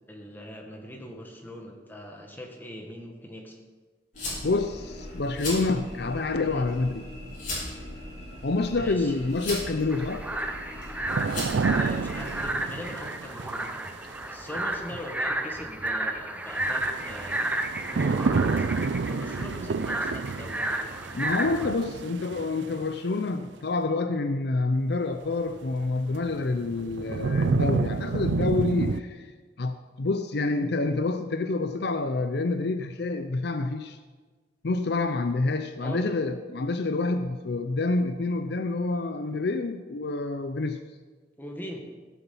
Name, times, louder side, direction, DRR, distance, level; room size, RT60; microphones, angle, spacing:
voice 1, 0.1-3.6 6.4-6.7 8.7-9.2 11.6-13.7 14.3-17.5 17.9-20.9 35.8-36.1 41.4-41.8, equal, 10° left, 1 dB, 1.6 m, -41 dB
sound 1, 4.1-12.4, left 1 dB, 45° left, 4.8 m, -38 dB
voice 2, 4.4-7.1 8.4-10.2 21.1-29.3 29.6-34.0 34.6-40.8, left 3 dB, 65° left, 9 dB, 0.6 m, -27 dB
sound 2, 9.9-21.7, right 1 dB, 10° right, 0.6 m, -32 dB
sound 3, 11.1-14.2 16.6-22.9 25.5-25.6 26.2-29.0, right 4 dB, 75° right, 0.4 m, -29 dB
16.0 x 7.2 x 5.5 m, 1.4 s
head